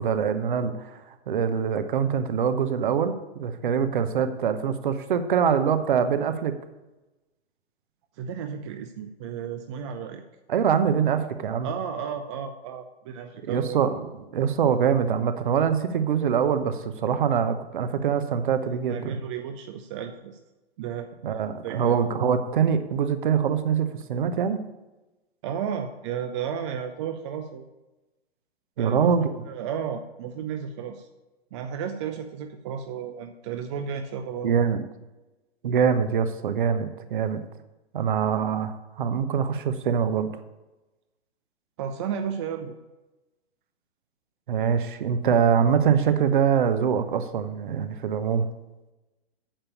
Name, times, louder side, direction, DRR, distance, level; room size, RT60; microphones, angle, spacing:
voice 1, 0.0-6.5 10.5-11.7 13.5-14.0 14.3-19.2 21.2-24.6 28.8-29.3 34.4-34.8 35.6-37.4 37.9-40.3 44.5-48.5, right 7 dB, 50° right, 10 dB, 1.0 m, -24 dB
voice 2, 8.2-10.2 11.6-13.8 18.7-20.4 20.8-21.1 21.6-22.0 25.4-27.7 28.8-29.1 29.5-31.1 31.5-34.5 41.8-42.7, right 7 dB, 30° right, 7 dB, 0.5 m, -33 dB
8.8 x 6.9 x 7.0 m, 1.1 s
figure-of-eight pair, 110°, 32 cm